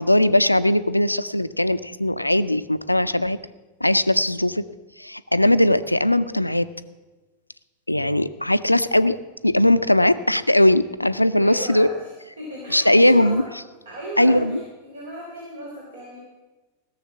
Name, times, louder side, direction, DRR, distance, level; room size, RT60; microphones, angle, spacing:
voice 1, 0.0-3.4 3.8-4.7 5.0-6.7 7.9-9.2 9.4-11.9 12.7-13.4 14.2-14.6, left 1 dB, 85° left, 13 dB, 0.4 m, -19 dB
voice 2, 11.4-12.1 12.4-13.5 13.9-14.6 14.9-16.2, equal, 65° right, -3 dB, 3.5 m, -36 dB
16.5 x 7.0 x 7.1 m, 1.2 s
figure-of-eight pair, 90°, 0 cm